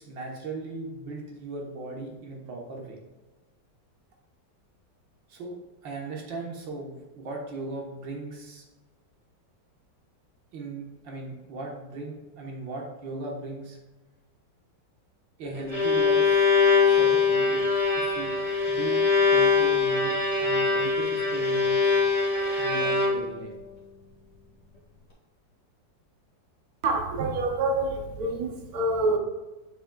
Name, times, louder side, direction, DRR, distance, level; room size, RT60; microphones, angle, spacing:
voice 1, 0.0-3.0 5.3-5.6 5.8-8.6 10.5-13.8 15.4-16.4 16.9-17.7 18.0-18.4 18.7-19.0 19.3-22.0 22.6-23.5, right 2 dB, 75° right, 2.0 m, -38 dB
Bowed string instrument, 15.4-23.5, left 4 dB, 25° left, 1.8 m, -23 dB
voice 2, 26.8-29.2, right 2 dB, 60° right, 1.2 m, -27 dB
7.2 x 6.5 x 2.3 m
omnidirectional pair, 2.0 m